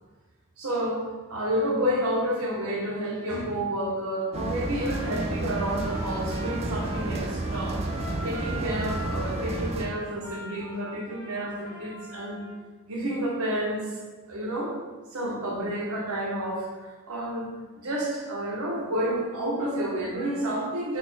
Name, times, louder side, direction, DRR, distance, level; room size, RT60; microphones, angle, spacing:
voice 1, 0.6-7.8 8.2-12.4 12.9-14.0 14.3-14.8 15.1-21.0, right 1 dB, 80° right, -2 dB, 0.9 m, -30 dB
sound 1, 4.3-9.9, right 2 dB, 30° right, 0.3 m, -31 dB
Trumpet, 4.8-12.6, left 1 dB, 10° left, 0.8 m, -43 dB
4.1 x 2.2 x 4.0 m, 1.3 s
head